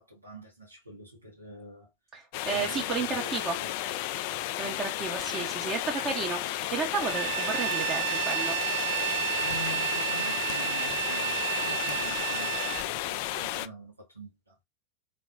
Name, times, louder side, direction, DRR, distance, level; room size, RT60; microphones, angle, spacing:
voice 1, 0.0-1.9 2.5-4.7 9.4-14.6, equal, 85° right, 1.7 m, -45 dB
voice 2, 2.1-3.6 4.6-8.5, right 5 dB, 25° right, 1.0 m, -32 dB
sound 1, 2.3-13.7, left 14 dB, 45° left, 0.3 m, -33 dB
Bowed string instrument, 7.0-12.9, right 11 dB, 55° right, 0.4 m, -31 dB
3.9 x 3.5 x 2.6 m
figure-of-eight pair, 90°, 0 cm